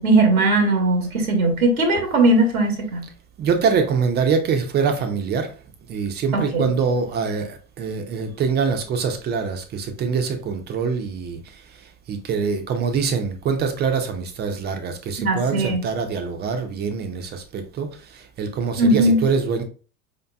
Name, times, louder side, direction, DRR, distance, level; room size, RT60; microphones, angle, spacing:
voice 1, 0.0-3.0 6.3-6.7 15.2-15.8 18.8-19.2, right 2 dB, 75° right, 4 dB, 1.1 m, -19 dB
voice 2, 3.4-5.5 5.9-11.6 12.1-19.6, right 5 dB, 25° right, 6 dB, 0.7 m, -24 dB
5.0 x 2.9 x 2.3 m, 0.37 s
figure-of-eight pair, 85°, 43 cm